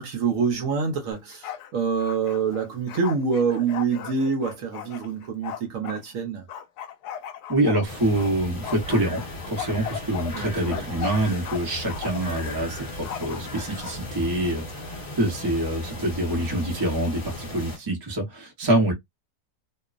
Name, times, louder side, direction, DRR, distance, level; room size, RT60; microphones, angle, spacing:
voice 1, 0.0-6.5 10.3-11.1, right 5 dB, 65° right, 1.0 m, -26 dB
Bark, 1.1-1.7 2.0-6.0 6.5-8.3 8.6-11.6 11.9-12.4 13.0-13.9, left 9 dB, 75° left, 1.1 m, -37 dB
voice 2, 7.5-18.9, right 1 dB, 25° right, 0.5 m, -26 dB
sound 1, 7.8-17.8, left 1 dB, 35° left, 1.2 m, -37 dB
2.9 x 2.1 x 2.4 m
omnidirectional pair, 1.8 m